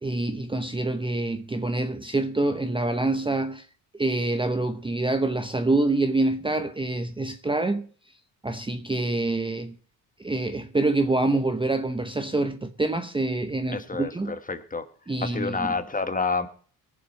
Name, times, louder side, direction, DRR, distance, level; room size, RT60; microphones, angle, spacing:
voice 1, 0.0-3.7 3.9-7.9 8.4-9.7 10.2-14.3 15.1-15.7, right 2 dB, 15° right, 0.8 m, -26 dB
voice 2, 13.7-14.9 15.2-16.5, left 4 dB, 20° left, 1.3 m, -29 dB
19.0 x 7.2 x 4.5 m
supercardioid pair, 70°, 38 cm